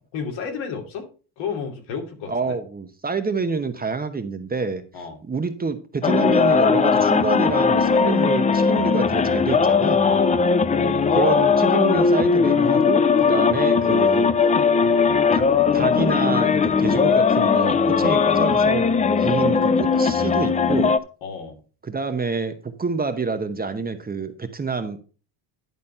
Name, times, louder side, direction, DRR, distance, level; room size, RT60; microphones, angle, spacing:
voice 1, 0.1-1.1 1.4-2.6 4.9-5.2 10.0-10.4 21.2-21.6, left 5 dB, 70° left, 3 dB, 2.8 m, -31 dB
voice 2, 2.3-4.8 5.2-10.1 10.8-14.3 15.3-15.5 15.7-18.9 19.2-21.0 21.8-25.0, right 4 dB, 20° right, 8 dB, 0.9 m, -27 dB
sound 1, 6.0-21.0, left 5 dB, 15° left, 0.4 m, -19 dB
11.0 x 4.1 x 5.4 m, 0.37 s
supercardioid pair, 95°, 49 cm